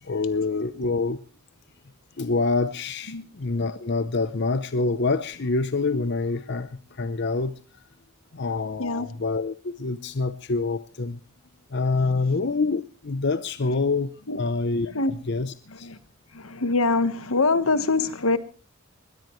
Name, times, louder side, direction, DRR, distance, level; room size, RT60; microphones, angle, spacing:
voice 1, 0.0-1.2 2.2-7.5 8.4-11.2 11.7-14.1 14.4-14.9 15.3-15.9, left 3 dB, 55° left, 0.7 m, -26 dB
voice 2, 16.3-18.4, left 3 dB, 85° left, 1.3 m, -24 dB
21.5 x 17.0 x 3.2 m
head